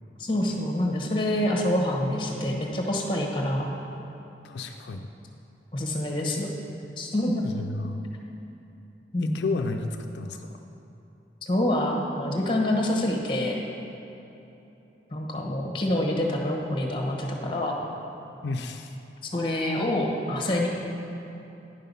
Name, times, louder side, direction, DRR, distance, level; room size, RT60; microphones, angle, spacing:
voice 1, 0.2-3.7 5.7-6.5 7.0-7.5 9.1-9.4 11.4-13.6 15.1-17.7 19.3-20.7, left 1 dB, 30° left, 0 dB, 1.0 m, -26 dB
voice 2, 4.4-5.1 7.4-8.0 9.2-10.5 18.4-18.9, left 3 dB, 80° left, 4 dB, 0.4 m, -32 dB
9.9 x 5.6 x 5.4 m, 3.0 s
head